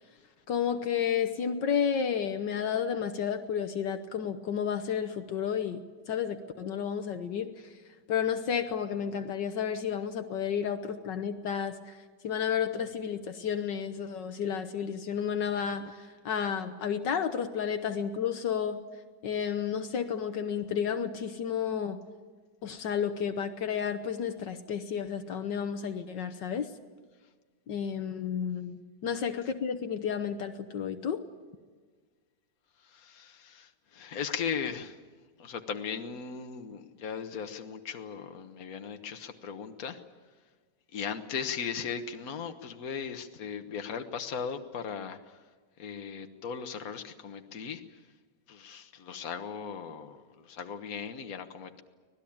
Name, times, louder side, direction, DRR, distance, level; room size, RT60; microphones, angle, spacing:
voice 1, 0.5-5.8 6.1-7.7 8.1-12.0 12.2-18.8 19.2-22.0 22.6-26.7 27.7-31.2, left 7 dB, 75° left, 7 dB, 1.7 m, -31 dB
voice 2, 32.8-35.0 35.4-40.0 40.9-45.4 45.8-48.0 48.5-51.8, left 6 dB, 55° left, 6 dB, 1.7 m, -38 dB
25.0 x 18.5 x 8.8 m, 1.5 s
omnidirectional pair, 2.0 m